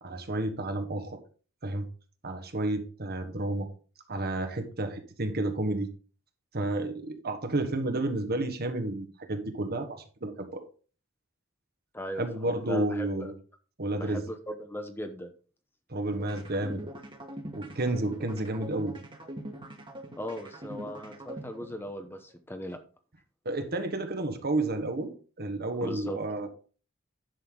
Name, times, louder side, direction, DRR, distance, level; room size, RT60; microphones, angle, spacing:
voice 1, 0.0-1.2 1.6-1.9 2.2-3.7 4.1-5.9 6.5-10.6 12.2-13.3 13.8-14.2 15.9-16.8 17.6-19.0 23.4-25.1 25.4-26.5, right 2 dB, 50° right, 7 dB, 1.5 m, -31 dB
voice 2, 11.9-13.3 14.0-15.3 20.2-22.8 25.8-26.2, equal, 10° left, 7 dB, 0.9 m, -38 dB
sound 1, 16.1-22.1, right 1 dB, 25° right, 1.6 m, -42 dB
10.5 x 6.6 x 3.9 m, 0.38 s
head